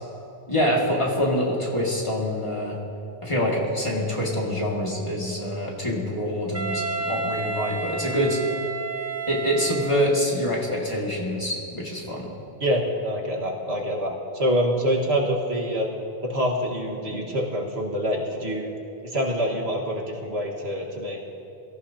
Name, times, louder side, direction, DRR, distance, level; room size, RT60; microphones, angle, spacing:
voice 1, 0.5-2.8 3.2-8.4 9.3-12.3, equal, 30° left, -3 dB, 2.2 m, -25 dB
Wind instrument woodwind instrument, 6.5-10.4, right 4 dB, 15° right, 0.6 m, -31 dB
voice 2, 12.6-15.9 16.2-18.7 19.0-21.2, equal, 80° right, -1 dB, 1.9 m, -26 dB
23.5 x 14.5 x 2.8 m, 2.9 s
omnidirectional pair, 1.1 m